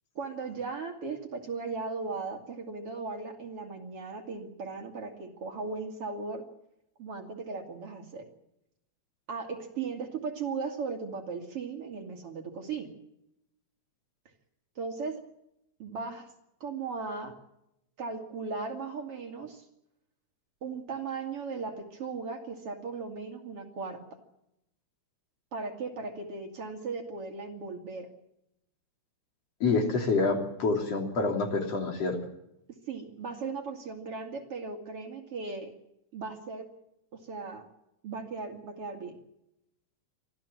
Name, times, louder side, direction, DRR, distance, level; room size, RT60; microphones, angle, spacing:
voice 1, 0.1-6.4 7.0-8.3 9.3-12.9 14.8-15.2 15.8-16.3 16.6-17.3 18.0-19.6 20.6-24.0 25.5-28.1 32.9-35.7 36.1-36.7 37.1-37.7 38.0-39.2, right 4 dB, 50° right, 3 dB, 3.4 m, -37 dB
voice 2, 29.6-32.2, left 3 dB, 55° left, 2 dB, 4.3 m, -27 dB
25.0 x 15.0 x 7.4 m, 0.83 s
omnidirectional pair, 3.4 m